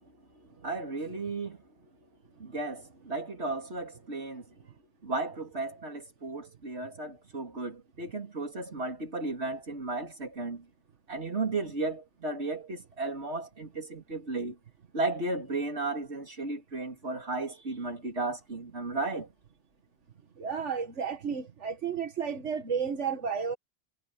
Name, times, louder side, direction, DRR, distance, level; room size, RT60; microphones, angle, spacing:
voice 1, 0.6-1.6 2.4-4.4 5.0-10.6 11.1-14.6 14.9-19.3, right 3 dB, 65° right, 3.5 m, -34 dB
voice 2, 20.4-23.6, right 6 dB, 90° right, 2.0 m, -32 dB
omnidirectional pair, 1.2 m